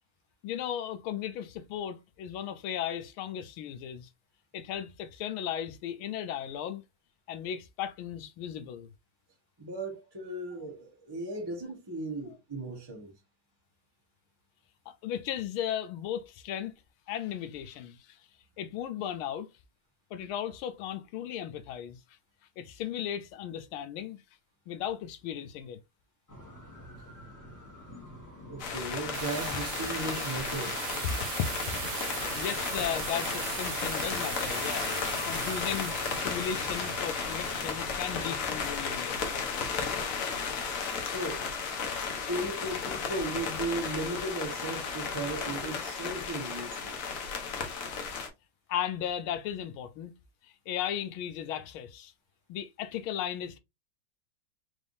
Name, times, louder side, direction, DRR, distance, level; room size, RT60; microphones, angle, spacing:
voice 1, 0.4-4.1 4.5-6.8 7.3-8.9 14.9-16.7 17.1-18.2 18.6-19.5 20.1-22.0 22.6-24.2 24.7-25.8 29.5-29.6 31.0-39.5 48.7-50.1 50.4-52.1 52.5-53.6, left 9 dB, 80° left, 1.5 m, -36 dB
voice 2, 9.6-13.1 28.5-30.8 41.0-41.5 42.1-47.0, right 2 dB, 20° right, 0.8 m, -36 dB
sound 1, 26.3-38.4, equal, 10° left, 1.2 m, -48 dB
sound 2, 28.6-48.3, left 5 dB, 55° left, 1.0 m, -34 dB
sound 3, 29.1-38.6, right 10 dB, 85° right, 1.6 m, -39 dB
4.4 x 3.4 x 2.6 m
omnidirectional pair, 2.3 m